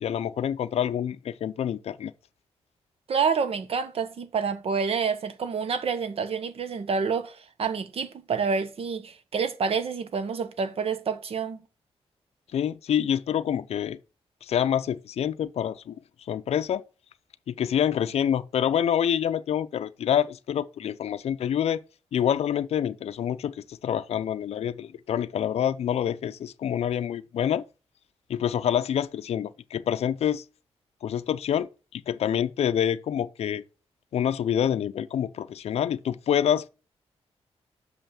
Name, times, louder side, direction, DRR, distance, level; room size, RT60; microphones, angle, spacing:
voice 1, 0.0-2.1 12.5-14.0 14.4-16.0 16.3-16.8 17.5-21.8 22.1-27.6 28.3-30.4 31.0-31.7 31.9-33.6 34.1-36.7, left 9 dB, 70° left, 0.5 m, -27 dB
voice 2, 3.1-11.6, right 5 dB, 65° right, 1.2 m, -28 dB
6.3 x 5.6 x 7.0 m
cardioid pair, 95°, 11 cm